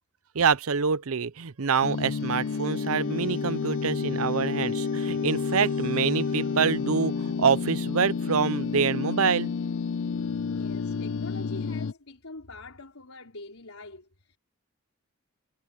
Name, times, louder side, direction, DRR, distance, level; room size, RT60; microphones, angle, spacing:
voice 1, 0.3-9.5, right 6 dB, 85° right, 0.7 m, -26 dB
sound 1, 1.8-11.9, left 5 dB, 65° left, 0.4 m, -30 dB
voice 2, 10.4-14.4, left 2 dB, 90° left, 4.3 m, -44 dB
head